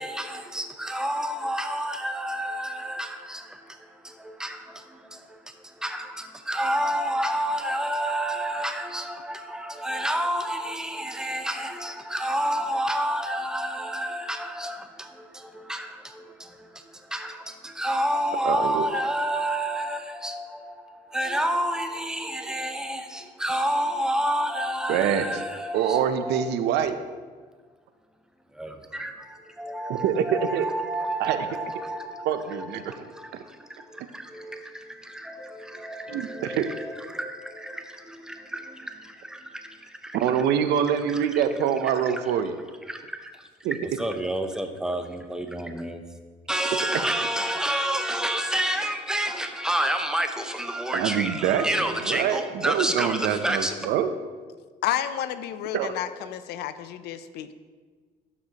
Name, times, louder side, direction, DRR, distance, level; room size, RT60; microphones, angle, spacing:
voice 1, 0.0-26.5 28.5-40.2 42.9-43.3 43.8-46.0 46.5-53.7, right 1 dB, 5° right, 0.7 m, -30 dB
voice 2, 18.4-18.9 24.9-25.4 25.7-27.0 29.9-30.7 31.2-31.5 32.2-33.1 33.3-33.4 36.1-36.7 40.1-42.6 43.6-43.8 50.9-54.1 55.7-55.9, right 8 dB, 80° right, 0.6 m, -25 dB
voice 3, 54.8-57.5, left 11 dB, 80° left, 0.5 m, -31 dB
12.0 x 6.1 x 2.9 m
cardioid pair, 110°, 17 cm